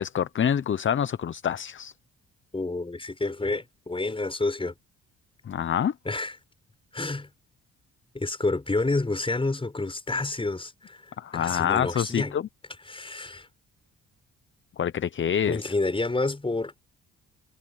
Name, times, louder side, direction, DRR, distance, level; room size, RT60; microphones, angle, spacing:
voice 1, 0.0-1.9 5.5-5.9 11.2-12.5 14.8-15.6, left 8 dB, 40° left, 0.8 m, -26 dB
voice 2, 2.5-4.7 6.0-6.4 6.9-7.3 8.1-12.4 12.9-13.5 15.5-16.7, left 2 dB, 15° left, 5.8 m, -29 dB
cardioid pair, 90°, 30 cm